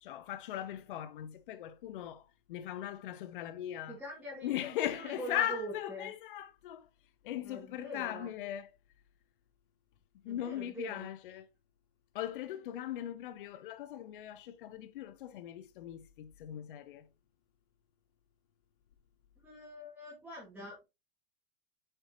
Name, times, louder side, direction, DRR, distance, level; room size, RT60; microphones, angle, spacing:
voice 1, 0.0-4.0 4.4-6.9 7.2-8.7 10.2-11.5 12.1-17.1, left 12 dB, 60° left, 0.7 m, -39 dB
voice 2, 3.9-6.1 7.4-8.3 10.2-11.1 19.4-20.8, right 1 dB, 5° right, 2.2 m, -44 dB
7.1 x 5.6 x 2.8 m
supercardioid pair, 160°, 30 cm